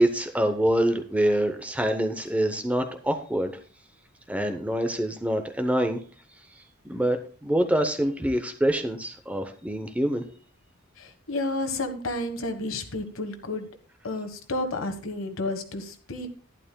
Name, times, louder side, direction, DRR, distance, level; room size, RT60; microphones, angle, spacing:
voice 1, 0.0-3.5 4.3-6.0 6.9-7.2 7.4-10.2, right 1 dB, 5° right, 7 dB, 0.7 m, -25 dB
voice 2, 11.0-13.7 14.0-16.3, left 2 dB, 65° left, 6 dB, 1.4 m, -31 dB
11.5 x 11.5 x 2.2 m, 0.41 s
head